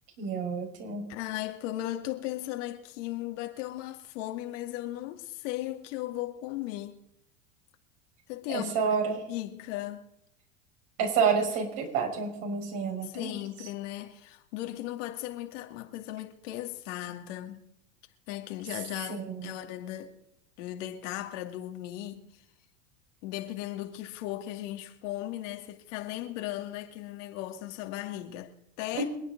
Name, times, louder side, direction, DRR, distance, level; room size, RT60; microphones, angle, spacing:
voice 1, 0.2-1.0 8.5-9.2 11.0-13.4 19.1-19.5 28.9-29.0, right 6 dB, 60° right, 5.9 m, -29 dB
voice 2, 1.1-7.0 8.3-8.9 9.3-10.1 13.0-17.6 18.3-20.1 20.6-22.2 23.2-29.0, left 14 dB, 65° left, 2.3 m, -37 dB
27.5 x 9.3 x 4.0 m
hypercardioid pair, 95°, 39 cm